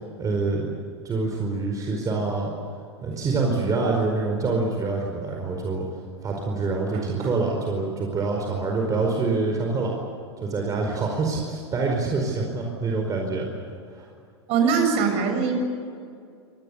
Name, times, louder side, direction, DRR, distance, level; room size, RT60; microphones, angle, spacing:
voice 1, 0.2-0.7 1.0-2.5 3.0-5.9 6.2-9.9 10.4-13.5 13.9-14.1, right 3 dB, 25° right, 1 dB, 4.8 m, -26 dB
voice 2, 6.9-7.4 14.5-15.6, right 5 dB, 45° right, 5 dB, 7.5 m, -23 dB
27.0 x 20.0 x 8.3 m, 2.3 s
hypercardioid pair, 100°, 14 cm